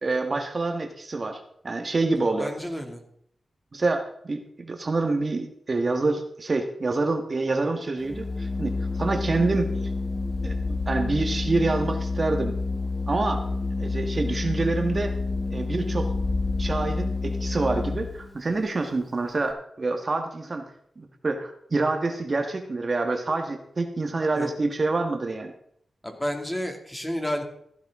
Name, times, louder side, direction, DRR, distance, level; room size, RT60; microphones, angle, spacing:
voice 1, 0.0-2.5 3.7-8.7 9.0-9.7 10.4-12.5 13.1-13.4 13.8-15.1 15.5-16.1 16.6-20.6 21.0-25.5, right 3 dB, 45° right, 5 dB, 1.5 m, -27 dB
voice 2, 2.4-3.0 24.3-24.5 26.0-27.4, equal, 10° left, 4 dB, 2.4 m, -30 dB
Organ, 8.0-18.3, left 3 dB, 35° left, 1.4 m, -28 dB
15.0 x 10.5 x 3.6 m, 0.70 s
cardioid pair, 65°, 0 cm